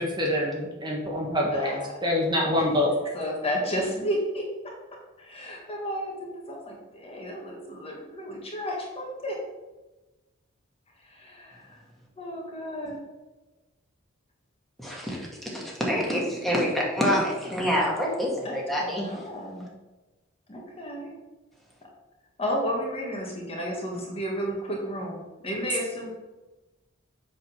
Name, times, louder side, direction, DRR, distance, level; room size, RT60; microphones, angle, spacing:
voice 1, 0.0-2.9, left 1 dB, 20° right, -2 dB, 1.3 m, -26 dB
voice 2, 1.5-1.9 2.5-2.6 3.1-4.4 5.2-9.4 11.0-11.8 12.2-13.0 18.4-19.7 20.5-21.1 22.4-26.1, equal, 30° left, -1 dB, 1.6 m, -32 dB
voice 3, 14.8-19.1, equal, ahead, -4 dB, 2.0 m, -27 dB
7.8 x 4.2 x 6.2 m, 1.1 s
head